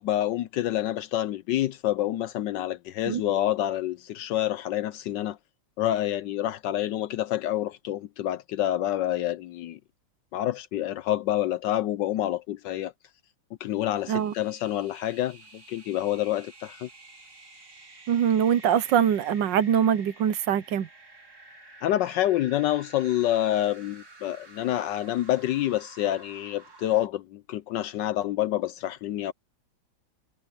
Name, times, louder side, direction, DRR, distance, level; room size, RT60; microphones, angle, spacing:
voice 1, 0.0-5.4 5.8-9.8 10.3-12.9 13.6-16.9 21.8-29.3, left 13 dB, 75° left, 1.1 m, -27 dB
sound 1, 13.7-27.1, right 2 dB, 50° right, 4.8 m, -50 dB
voice 2, 18.1-20.9, right 9 dB, 65° right, 1.4 m, -23 dB
omnidirectional pair, 2.2 m